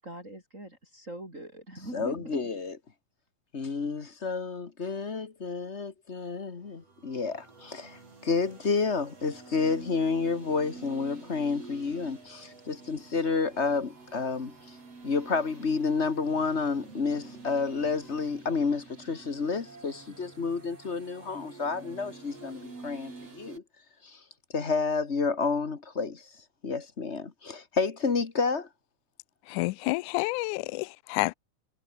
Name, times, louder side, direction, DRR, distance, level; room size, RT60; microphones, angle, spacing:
voice 1, 0.0-2.4, right 1 dB, 20° right, 8.1 m, -42 dB
voice 2, 1.9-2.7 3.5-14.7 15.0-23.6 24.0-24.2 24.5-26.3 26.6-28.7, left 4 dB, 35° left, 1.1 m, -30 dB
sound 1, 6.7-23.6, right 3 dB, 50° right, 6.8 m, -48 dB
voice 3, 29.5-31.3, left 23 dB, 80° left, 1.9 m, -29 dB
omnidirectional pair, 3.7 m